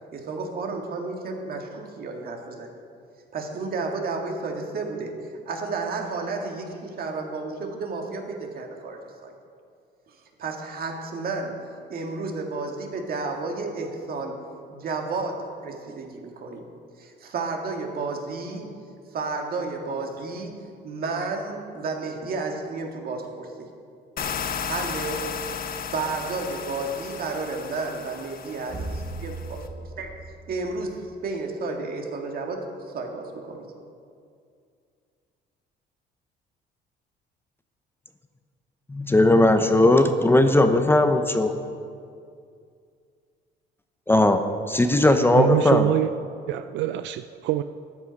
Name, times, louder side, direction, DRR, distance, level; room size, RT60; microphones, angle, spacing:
voice 1, 0.1-2.7 3.3-5.2 5.4-9.3 10.1-11.6 11.9-14.4 14.7-16.7 17.0-18.7 19.1-23.7 24.7-25.3 25.9-29.7 30.0-30.1 30.5-32.7 32.9-33.6, right 3 dB, 50° right, 2 dB, 1.8 m, -32 dB
sound 1, 24.2-29.7, left 7 dB, 50° left, 0.8 m, -34 dB
sound 2, 28.7-31.3, right 2 dB, 35° right, 3.2 m, -37 dB
voice 2, 38.9-41.5 44.1-45.9, left 2 dB, 10° left, 8 dB, 0.7 m, -18 dB
voice 3, 45.3-46.1 46.5-47.6, right 14 dB, 75° right, 10 dB, 0.4 m, -25 dB
13.0 x 9.5 x 5.2 m, 2.3 s
cardioid pair, 110°, 19 cm